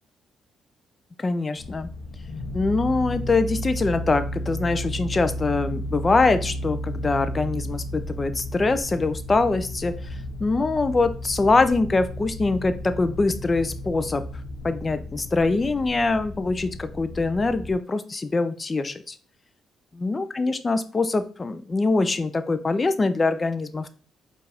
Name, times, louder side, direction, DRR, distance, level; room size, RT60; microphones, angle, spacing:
voice 1, 1.2-1.9 2.5-9.9 10.4-14.2 14.6-19.1 20.0-23.9, left 3 dB, 30° left, 11 dB, 0.4 m, -23 dB
sound 1, 1.6-17.7, equal, 90° left, 0.7 m, -33 dB
4.5 x 2.4 x 3.4 m, 0.41 s
cardioid pair, 90°, 0 cm